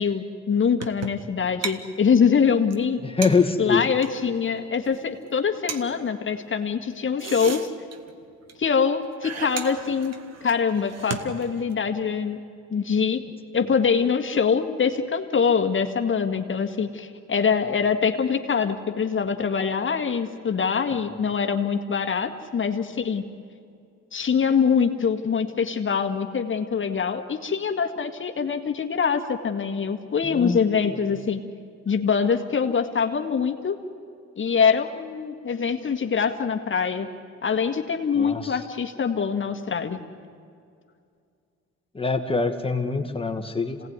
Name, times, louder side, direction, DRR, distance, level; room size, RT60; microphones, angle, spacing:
voice 1, 0.0-3.0 3.6-7.7 8.6-10.1 10.4-12.4 12.7-13.2 13.5-23.2 24.1-31.4 31.9-33.8 34.4-37.1 37.4-40.0, left 6 dB, 40° left, 5 dB, 1.8 m, -24 dB
sound 1, 0.8-1.3 1.6-1.8 2.1-2.2 2.4-2.5 2.7-2.8 3.2-4.2 4.7-5.0 5.3-5.4 5.7-5.8 7.0-8.2 8.5-8.6 8.8-8.9 9.2-11.8, right 6 dB, 55° right, 1.7 m, -35 dB
voice 2, 3.0-3.9 30.3-30.6 38.2-38.6 41.9-43.9, left 4 dB, 20° left, 5 dB, 2.0 m, -24 dB
27.0 x 18.0 x 9.7 m, 2.3 s
cardioid pair, 90°, 30 cm